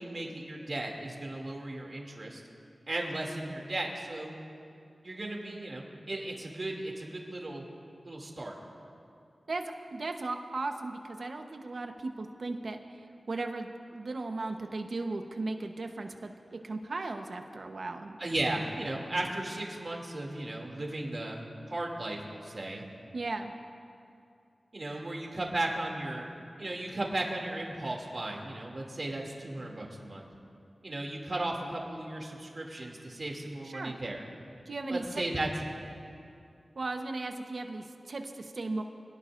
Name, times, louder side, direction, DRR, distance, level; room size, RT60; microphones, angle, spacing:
voice 1, 0.0-2.4 2.9-4.3 5.0-7.6 8.0-8.5 18.2-21.4 21.7-22.8 24.7-26.3 26.6-30.3 30.8-34.3 34.9-35.5, right 2 dB, 50° right, -1 dB, 2.7 m, -35 dB
voice 2, 9.9-18.2 23.1-23.5 24.9-25.0 33.6-34.0 34.7-35.2 36.7-38.8, right 3 dB, 65° right, 4 dB, 1.1 m, -37 dB
25.5 x 18.0 x 2.6 m, 2.5 s
wide cardioid pair, 80°, 0 cm